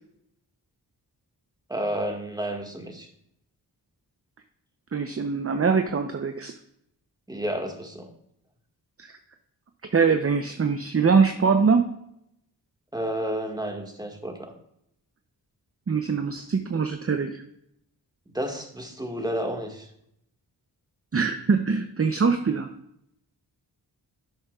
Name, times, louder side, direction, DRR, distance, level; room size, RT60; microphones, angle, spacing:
voice 1, 1.7-3.1 7.3-8.1 12.9-14.5 18.3-19.9, right 1 dB, 10° right, 3 dB, 1.8 m, -31 dB
voice 2, 4.9-6.5 9.0-9.1 9.9-11.9 15.9-17.4 21.1-22.7, right 5 dB, 35° right, 7 dB, 0.7 m, -23 dB
11.0 x 7.2 x 2.4 m, 0.75 s
cardioid pair, 40°, 43 cm